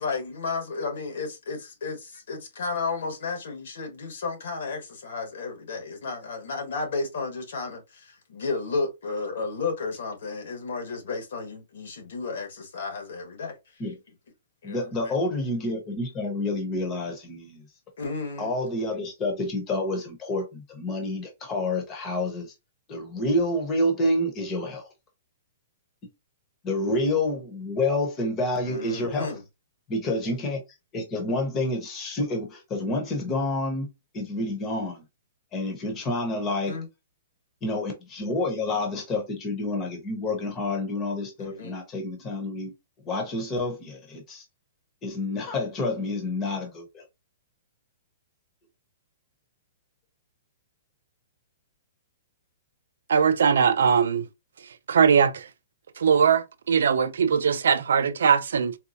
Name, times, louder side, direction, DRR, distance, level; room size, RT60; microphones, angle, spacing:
voice 1, 0.0-13.5 14.6-15.1 18.0-18.5 28.6-29.4 36.7-36.9 41.4-41.7, left 4 dB, 65° left, 1.5 m, -33 dB
voice 2, 14.6-17.7 18.4-22.5 22.9-24.9 26.6-29.3 29.9-30.6 30.9-33.9 34.1-35.0 35.5-36.8 37.6-42.7 43.0-44.4 45.0-47.0, left 2 dB, 15° left, 0.9 m, -28 dB
voice 3, 53.1-54.3 54.9-55.4 56.0-58.8, right 7 dB, 85° right, 0.4 m, -20 dB
4.1 x 2.2 x 2.7 m
hypercardioid pair, 175°, 0 cm